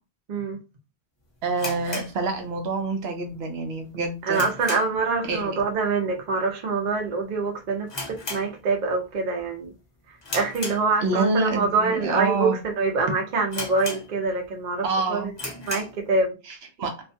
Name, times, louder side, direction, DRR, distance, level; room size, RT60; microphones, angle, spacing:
voice 1, 0.3-0.6 4.2-9.7 10.1-15.3 15.7-16.4, right 4 dB, 50° right, 0.7 m, -25 dB
voice 2, 1.4-4.5 5.2-5.6 11.0-12.6 14.8-15.3 16.8-16.9, right 3 dB, 85° right, 0.9 m, -27 dB
sound 1, 1.5-2.9 3.2-3.3 3.8-5.1 5.4-5.7 6.0-6.1 6.8-7.1 7.3-7.4 7.9-9.0 9.4-9.7 10.2-11.3 11.9-12.0 12.6-12.7 12.9-13.0 13.5-14.5 14.8-14.9 15.3-16.0, left 2 dB, 30° left, 0.6 m, -35 dB
2.4 x 2.2 x 2.5 m
omnidirectional pair, 1.0 m